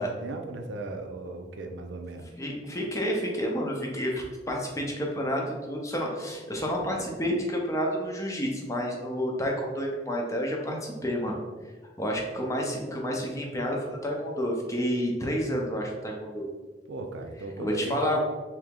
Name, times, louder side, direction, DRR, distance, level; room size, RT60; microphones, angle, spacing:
voice 1, 0.0-2.3 16.9-18.2, right 2 dB, 85° right, 4 dB, 0.5 m, -37 dB
voice 2, 2.4-11.4 12.0-16.5 17.6-18.2, equal, 15° left, 0 dB, 0.6 m, -30 dB
3.3 x 2.9 x 3.6 m, 1.3 s
head